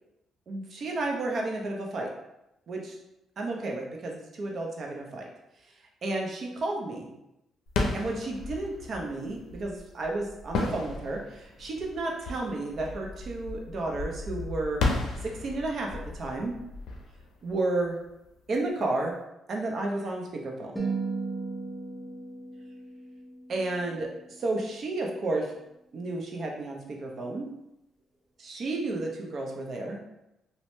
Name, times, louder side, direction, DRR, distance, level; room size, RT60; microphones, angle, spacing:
voice 1, 0.5-2.1 2.7-3.0 3.4-5.3 6.0-7.1 7.9-14.8 15.2-16.5 17.4-18.0 18.5-19.1 19.5-20.8 23.5-24.1 24.4-25.5 25.9-27.5 28.4-30.0, right 2 dB, 55° right, 0 dB, 0.6 m, -32 dB
sound 1, 7.7-18.3, left 3 dB, 80° left, 0.5 m, -34 dB
sound 2, 20.8-25.1, right 4 dB, 10° left, 0.6 m, -37 dB
2.7 x 2.0 x 3.1 m, 0.86 s
cardioid pair, 90°, 0 cm